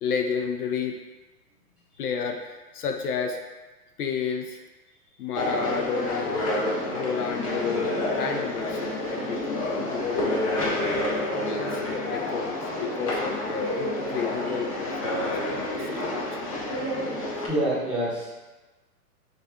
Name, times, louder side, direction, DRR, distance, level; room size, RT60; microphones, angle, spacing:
voice 1, 0.0-1.0 2.0-3.4 4.0-4.6 5.2-6.4 6.9-7.9 8.2-10.9 11.4-16.4, left 6 dB, 70° left, 5 dB, 0.6 m, -32 dB
sound 1, 5.3-17.5, left 1 dB, 25° left, 0.4 m, -29 dB
voice 2, 17.5-18.3, right 1 dB, ahead, -11 dB, 0.9 m, -26 dB
6.4 x 2.5 x 2.2 m, 1.2 s
hypercardioid pair, 130°, 48 cm